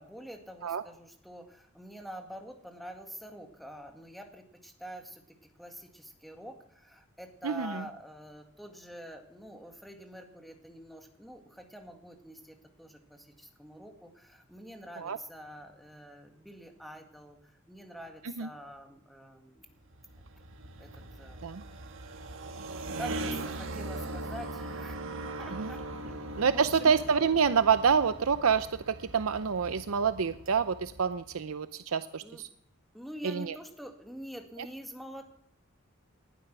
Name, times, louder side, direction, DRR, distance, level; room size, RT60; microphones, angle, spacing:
voice 1, 0.0-19.7 20.8-21.4 23.0-25.0 25.4-25.8 26.1-26.9 32.2-32.4 32.9-35.2, equal, ahead, 4 dB, 2.0 m, -46 dB
voice 2, 7.4-7.8 15.0-15.2 18.2-18.5 21.4-21.6 25.5-25.7 26.4-32.5 33.2-33.6, right 6 dB, 80° right, 12 dB, 0.6 m, -27 dB
sound 1, 19.8-31.4, right 2 dB, 65° right, 1.7 m, -40 dB
19.5 x 12.5 x 6.1 m, 0.66 s
head